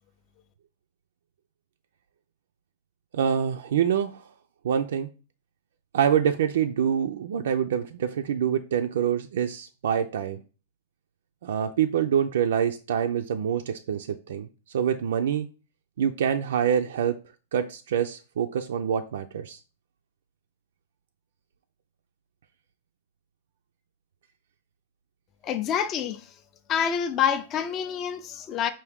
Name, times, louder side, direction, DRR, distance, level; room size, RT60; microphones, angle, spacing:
voice 1, 3.1-4.2 4.6-5.1 5.9-10.4 11.4-14.5 14.7-15.5 16.0-17.2 17.5-19.6, right 8 dB, 75° right, 0.4 m, -26 dB
voice 2, 25.4-26.2 26.7-28.7, left 8 dB, 25° left, 0.4 m, -27 dB
4.7 x 2.5 x 3.5 m
supercardioid pair, 160°, 0 cm